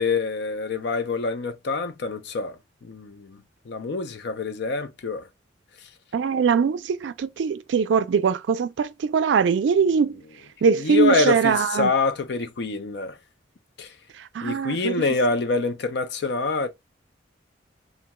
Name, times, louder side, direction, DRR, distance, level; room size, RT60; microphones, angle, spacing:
voice 1, 0.0-3.4 3.7-5.3 10.7-13.2 13.8-13.9 14.4-16.7, left 4 dB, 60° left, 0.5 m, -26 dB
voice 2, 6.1-10.2 10.6-11.9 14.3-14.9, right 6 dB, 70° right, 0.3 m, -22 dB
2.8 x 2.2 x 2.8 m
head